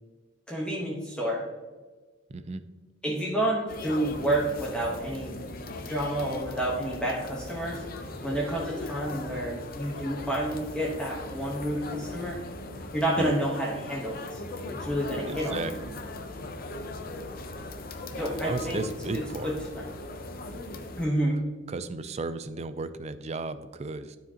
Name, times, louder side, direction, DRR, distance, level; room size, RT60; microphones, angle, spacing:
voice 1, 0.5-1.4 3.0-5.4 5.8-7.8 8.2-12.4 12.9-14.4 14.8-15.7 18.2-18.8 19.1-19.8 21.0-21.4, right 1 dB, 5° left, -4 dB, 1.1 m, -29 dB
voice 2, 2.3-2.6 13.2-13.4 15.2-16.0 18.1-19.5 21.7-24.2, right 3 dB, 35° right, 12 dB, 0.4 m, -35 dB
sound 1, 3.7-21.1, left 2 dB, 50° left, 0.7 m, -39 dB
12.0 x 4.8 x 2.9 m, 1.3 s
head